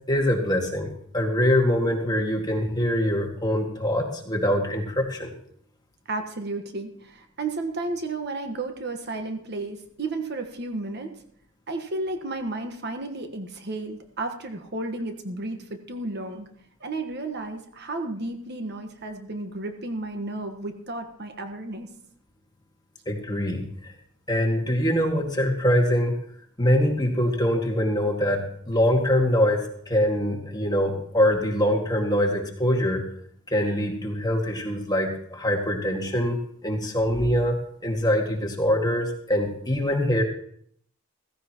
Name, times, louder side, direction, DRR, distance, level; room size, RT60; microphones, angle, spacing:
voice 1, 0.1-5.3 23.1-23.9 24.3-26.2 26.6-29.6 29.9-33.0 33.5-37.6 37.8-40.2, equal, 20° left, 1 dB, 2.0 m, -24 dB
voice 2, 6.1-11.2 11.7-16.5 16.8-21.9, right 2 dB, 55° right, 6 dB, 1.4 m, -33 dB
15.5 x 15.5 x 3.0 m, 0.64 s
head